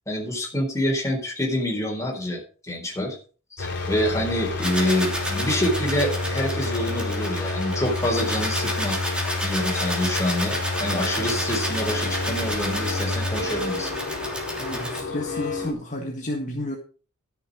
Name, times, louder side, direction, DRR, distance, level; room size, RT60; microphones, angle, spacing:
voice 1, 0.1-3.2 3.6-9.0 9.4-13.9, left 1 dB, 15° left, 0 dB, 4.0 m, -27 dB
sound 1, 3.6-15.7, left 2 dB, 55° left, 3.6 m, -29 dB
sound 2, 4.6-15.0, equal, 5° right, 3.0 m, -31 dB
voice 2, 14.6-16.8, left 1 dB, 35° left, 0 dB, 1.7 m, -31 dB
13.5 x 6.9 x 5.2 m, 0.38 s
head